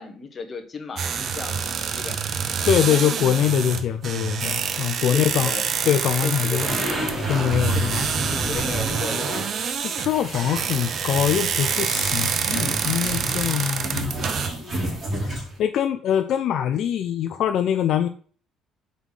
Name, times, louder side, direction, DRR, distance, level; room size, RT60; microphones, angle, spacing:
voice 1, 0.0-2.2 2.8-3.0 5.1-5.7 6.2-7.1 7.7-9.5, left 4 dB, 30° left, 5 dB, 1.0 m, -35 dB
sound 1, 1.0-14.5, right 7 dB, 45° right, 0.6 m, -27 dB
voice 2, 2.6-5.5 5.9-6.7 7.3-8.1 9.8-14.1 15.2-18.1, left 9 dB, 60° left, 8 dB, 0.4 m, -23 dB
sound 2, 6.5-15.6, equal, 25° right, 2.9 m, -30 dB
4.7 x 3.9 x 5.5 m, 0.43 s
cardioid pair, 135°, 0 cm